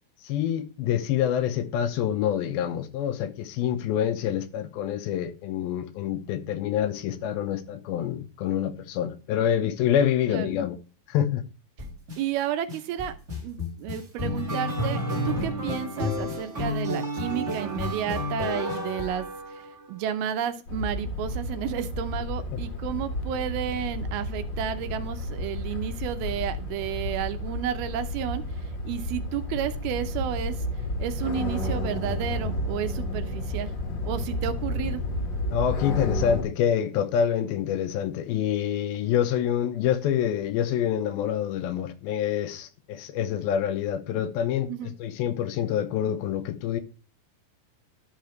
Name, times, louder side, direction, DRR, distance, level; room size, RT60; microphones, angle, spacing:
voice 1, 0.2-10.8 11.1-11.4 35.4-46.8, left 9 dB, 80° left, 2.5 m, -26 dB
sound 1, 11.8-12.2 12.7-19.9, left 1 dB, 30° right, 1.3 m, -30 dB
voice 2, 12.2-13.1 13.4-30.6 31.0-33.7 34.0-35.0 44.7-44.9, right 10 dB, 80° right, 2.6 m, -32 dB
sound 2, 20.7-36.4, left 1 dB, 50° left, 1.5 m, -31 dB
11.5 x 5.7 x 3.1 m
omnidirectional pair, 4.5 m